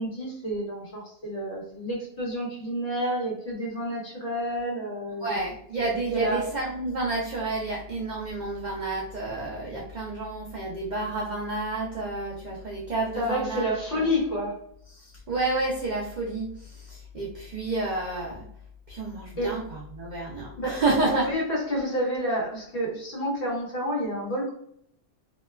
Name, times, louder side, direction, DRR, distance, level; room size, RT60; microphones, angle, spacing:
voice 1, 0.0-5.4 6.0-6.4 13.2-14.6 19.4-19.6 20.6-20.8 21.1-24.5, equal, 60° left, -4 dB, 1.3 m, -29 dB
voice 2, 5.2-14.1 14.9-18.4 18.9-21.2, right 2 dB, 75° right, -3 dB, 0.4 m, -30 dB
2.8 x 2.1 x 2.2 m, 0.67 s
omnidirectional pair, 1.3 m